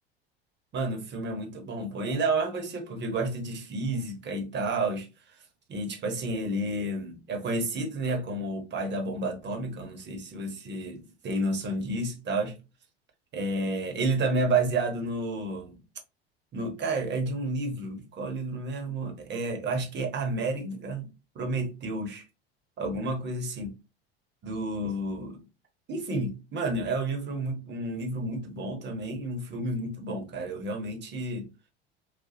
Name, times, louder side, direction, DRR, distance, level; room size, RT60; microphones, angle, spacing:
voice 1, 0.7-5.1 5.7-12.6 13.3-15.8 16.5-21.1 21.3-22.2 22.8-23.7 24.4-25.5 25.9-31.5, right 2 dB, 35° right, 1.1 m, -31 dB
4.2 x 2.2 x 2.7 m
hypercardioid pair, 75°, 30 cm